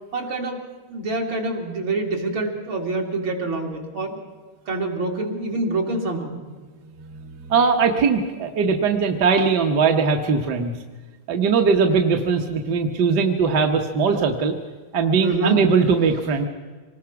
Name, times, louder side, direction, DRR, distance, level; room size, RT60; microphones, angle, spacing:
voice 1, 0.1-0.6 0.9-4.2 4.7-6.4 15.2-15.6, right 2 dB, 70° right, 1 dB, 3.5 m, -26 dB
voice 2, 7.1-10.7 11.3-14.5 14.9-16.4, right 5 dB, 55° right, 4 dB, 1.7 m, -20 dB
25.5 x 19.5 x 5.9 m, 1.4 s
omnidirectional pair, 2.3 m